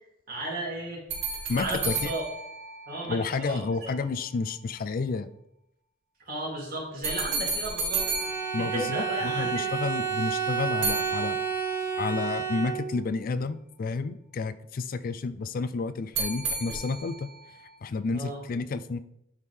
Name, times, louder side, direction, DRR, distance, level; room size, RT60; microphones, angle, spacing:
voice 1, 0.3-1.0 1.5-2.2 2.9-3.9 6.3-8.0 8.5-9.7 18.1-18.4, right 1 dB, 50° right, -3 dB, 2.4 m, -34 dB
sound 1, 1.1-3.5 7.0-9.5 10.8-12.0 16.1-17.4, right 4 dB, 75° right, 2.3 m, -33 dB
voice 2, 1.5-2.1 3.1-5.3 8.5-11.4 12.0-17.3 17.8-19.0, left 4 dB, 50° left, 13 dB, 0.4 m, -30 dB
Bowed string instrument, 7.9-13.2, right 7 dB, 15° right, 0.8 m, -30 dB
11.0 x 3.7 x 3.2 m, 0.76 s
head